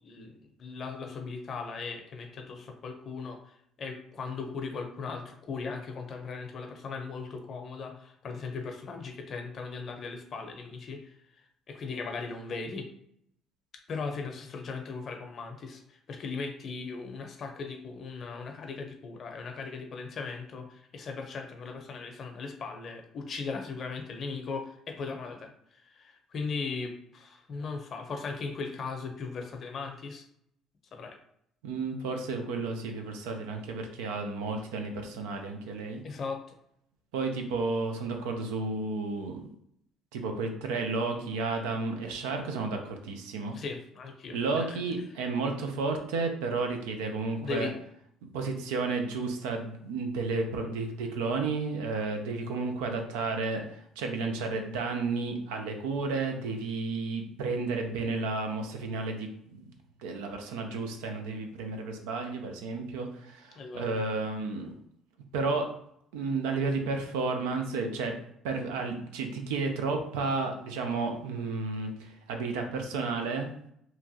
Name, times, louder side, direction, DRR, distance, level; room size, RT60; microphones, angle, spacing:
voice 1, 0.0-12.9 13.9-30.2 30.9-31.2 36.0-36.4 43.5-44.8 47.4-47.8 63.6-63.9, left 4 dB, 50° left, 4 dB, 0.6 m, -38 dB
voice 2, 31.6-36.0 37.1-39.5 40.1-43.6 44.3-47.7 48.3-59.7 60.0-64.7 65.3-65.7 66.1-68.1 68.4-73.5, right 3 dB, 80° right, 4 dB, 0.5 m, -32 dB
2.8 x 2.5 x 2.7 m, 0.71 s
hypercardioid pair, 60°, 0 cm